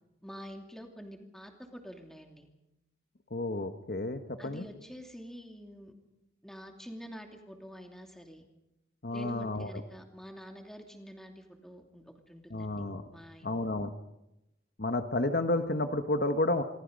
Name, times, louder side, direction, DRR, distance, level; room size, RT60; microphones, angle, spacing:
voice 1, 0.2-2.5 4.4-5.9 6.4-8.4 9.1-12.9 13.1-13.5, equal, 5° left, 3 dB, 2.7 m, -47 dB
voice 2, 3.3-4.6 9.0-9.7 12.5-13.0 13.4-13.9 14.8-16.6, left 2 dB, 55° left, 8 dB, 1.2 m, -31 dB
26.5 x 22.5 x 5.3 m, 0.89 s
head